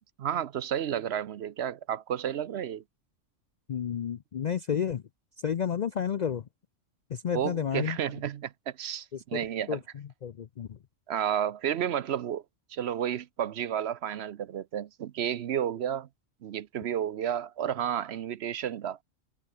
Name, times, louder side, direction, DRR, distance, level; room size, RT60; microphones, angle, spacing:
voice 1, 0.2-2.8 7.3-9.8 11.1-12.4 12.7-16.1 16.4-19.0, right 9 dB, 65° right, 0.9 m, -31 dB
voice 2, 3.7-5.0 5.4-6.5 7.1-8.0 9.1-10.8, left 8 dB, 55° left, 0.4 m, -31 dB
omnidirectional pair, 1.3 m